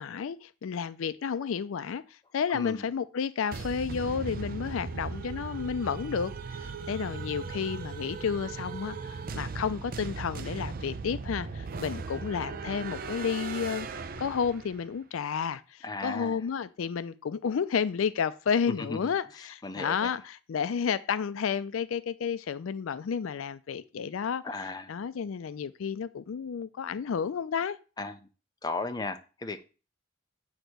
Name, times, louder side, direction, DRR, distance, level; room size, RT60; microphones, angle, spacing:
voice 1, 0.0-2.0 2.3-13.9 14.2-24.4 24.9-27.8, left 6 dB, 80° left, 0.4 m, -31 dB
voice 2, 2.5-2.9 15.8-16.4 18.7-19.1 19.6-20.2 24.4-24.9 28.0-28.2 28.6-29.6, left 3 dB, 20° left, 0.5 m, -36 dB
sound 1, 3.5-14.9, right 4 dB, 45° right, 0.4 m, -38 dB
7.9 x 2.9 x 6.2 m
head